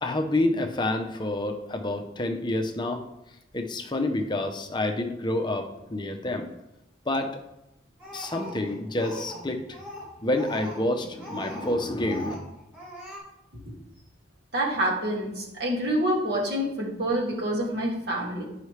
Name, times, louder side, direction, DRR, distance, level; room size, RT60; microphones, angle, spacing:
voice 1, 0.0-3.0 3.5-6.5 7.1-7.4 8.1-9.8 10.2-12.3, left 1 dB, 25° left, 5 dB, 0.6 m, -28 dB
Speech, 8.0-9.4 9.7-11.8 12.0-12.5 12.7-13.2, equal, 10° right, 2.3 m, -40 dB
voice 2, 14.5-18.5, right 1 dB, 55° right, -3 dB, 1.9 m, -27 dB
9.8 x 5.6 x 3.2 m, 0.90 s
head